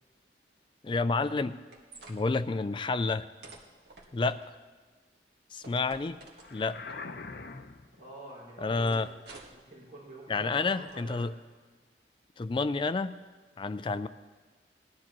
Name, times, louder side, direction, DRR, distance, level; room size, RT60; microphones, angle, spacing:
voice 1, 0.8-1.6 2.1-3.3 4.1-4.4 5.5-6.2 6.5-6.8 8.6-9.1 10.3-11.3 12.4-13.1 13.6-14.1, left 3 dB, 30° left, 13 dB, 0.3 m, -29 dB
sound 1, 1.2-2.2 3.4-4.5 5.6-6.9 8.9-9.7 10.5-11.0, right 3 dB, 65° right, 1.7 m, -52 dB
sound 2, 6.4-8.0, left 4 dB, 60° left, 0.7 m, -43 dB
voice 2, 7.9-9.1 9.5-11.3, right 1 dB, 45° right, -7 dB, 4.9 m, -47 dB
19.5 x 12.0 x 3.1 m, 1.3 s
head